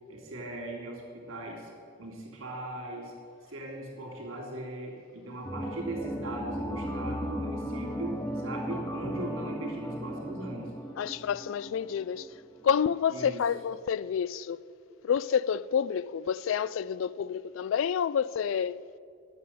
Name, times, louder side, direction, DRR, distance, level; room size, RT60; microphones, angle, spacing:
voice 1, 0.1-1.7 2.0-3.1 3.5-10.7 13.1-13.4, right 1 dB, 90° right, 3.2 m, -39 dB
sound 1, 5.4-12.5 12.8-12.9, equal, 15° left, 0.7 m, -36 dB
voice 2, 11.0-12.3 12.6-14.6 15.0-18.8, left 7 dB, 75° left, 0.3 m, -29 dB
11.0 x 6.8 x 8.4 m
head